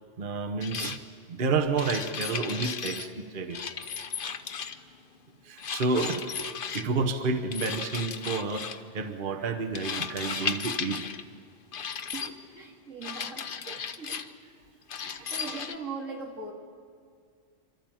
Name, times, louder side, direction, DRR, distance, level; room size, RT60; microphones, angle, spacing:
voice 1, 0.2-1.0 1.3-3.6 5.5-6.4 6.7-8.7 8.9-11.0 13.7-13.8 15.4-15.6, right 4 dB, 45° right, 6 dB, 1.2 m, -30 dB
sound 1, 0.6-1.0 1.8-3.1 3.5-4.9 5.6-6.9 7.5-8.8 9.7-11.2 11.7-12.3 13.0-14.3 14.9-15.7, left 6 dB, 50° left, 0.9 m, -35 dB
voice 2, 12.1-13.5 14.0-14.2 15.0-16.5, right 4 dB, 90° right, 0 dB, 3.0 m, -40 dB
29.0 x 13.0 x 9.0 m, 2.1 s
omnidirectional pair, 1.3 m